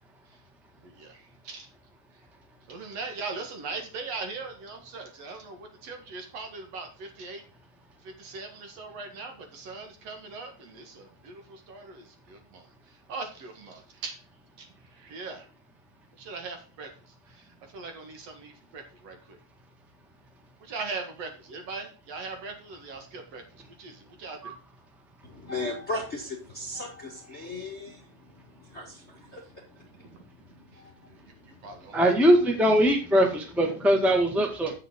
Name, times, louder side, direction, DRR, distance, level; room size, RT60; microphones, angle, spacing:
voice 1, 0.8-1.7 2.1-2.2 2.7-7.4 8.0-14.2 14.6-15.5 16.2-19.4 20.6-24.6 30.0-30.3 30.7-30.8 31.1-31.2 31.5-32.3, right 4 dB, 55° right, 4 dB, 2.5 m, -40 dB
voice 2, 25.2-31.9, left 2 dB, 30° left, 1 dB, 1.3 m, -38 dB
voice 3, 31.9-34.7, equal, ahead, 3 dB, 0.4 m, -21 dB
8.9 x 7.8 x 3.7 m, 0.36 s
omnidirectional pair, 3.8 m